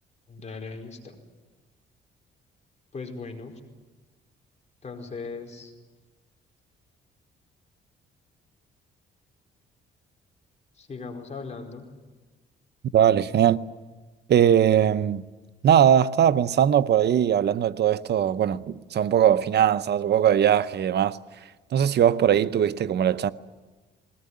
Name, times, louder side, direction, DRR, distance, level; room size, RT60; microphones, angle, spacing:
voice 1, 0.3-1.1 2.9-3.6 4.8-5.7 10.8-11.9, left 4 dB, 35° left, 4.7 m, -38 dB
voice 2, 12.9-13.6 14.3-15.2 15.6-21.2 21.7-23.3, right 9 dB, 55° right, 0.8 m, -20 dB
21.0 x 18.5 x 9.7 m
cardioid pair, 90°, 20 cm